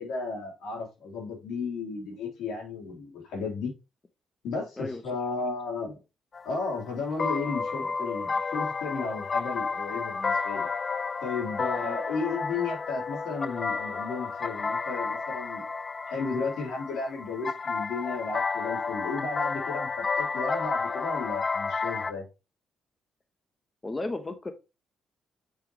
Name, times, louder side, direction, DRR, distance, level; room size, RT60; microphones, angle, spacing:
voice 1, 0.0-3.7 4.4-6.0 6.4-10.7 11.2-15.6 16.1-22.2, left 4 dB, 85° left, 0 dB, 3.2 m, -34 dB
sound 1, 6.3-22.1, left 4 dB, 35° left, 0.4 m, -31 dB
voice 2, 23.8-24.5, left 2 dB, 20° left, 8 dB, 0.9 m, -35 dB
6.9 x 5.5 x 2.9 m, 0.27 s
cardioid pair, 90°, 0 cm